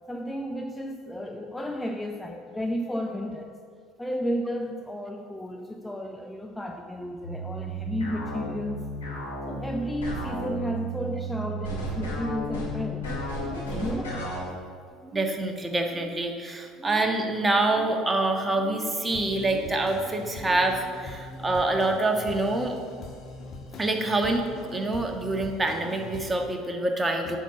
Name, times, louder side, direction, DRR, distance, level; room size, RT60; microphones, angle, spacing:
voice 1, 0.1-3.6 4.0-8.9 9.5-13.1 13.5-14.3 22.9-23.0, equal, 10° left, 3 dB, 0.7 m, -33 dB
sound 1, 7.2-14.4, right 1 dB, 85° left, 2.5 m, -33 dB
voice 2, 13.4-13.9 15.1-22.7 23.8-27.4, right 2 dB, 20° right, 3 dB, 1.4 m, -26 dB
sound 2, 19.0-26.3, left 3 dB, 45° left, 1.4 m, -42 dB
8.1 x 6.3 x 7.1 m, 2.1 s
hypercardioid pair, 65°, 0 cm